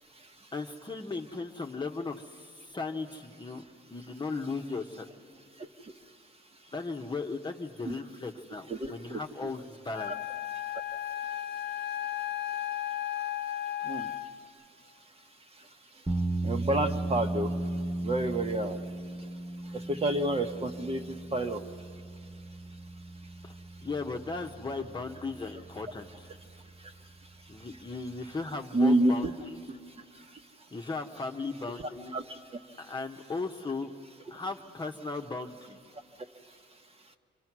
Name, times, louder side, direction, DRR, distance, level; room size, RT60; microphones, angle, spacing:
voice 1, 0.5-2.2 2.7-3.6 3.9-5.1 6.7-10.1 23.4-23.5 23.8-26.3 27.5-29.6 30.7-32.1 32.8-33.9 34.3-35.8, left 3 dB, 25° left, 3 dB, 1.2 m, -37 dB
voice 2, 8.7-9.2 10.0-10.1 13.9-14.1 16.4-17.5 18.0-18.8 19.9-21.0 21.3-21.6 28.7-29.3 32.1-32.2, right 1 dB, 30° right, 4 dB, 1.4 m, -28 dB
Wind instrument woodwind instrument, 9.9-14.5, left 12 dB, 70° left, 0.6 m, -35 dB
sound 1, 16.1-28.6, right 2 dB, 10° right, 0.7 m, -37 dB
28.0 x 24.5 x 6.2 m, 2.4 s
cardioid pair, 90°, 20 cm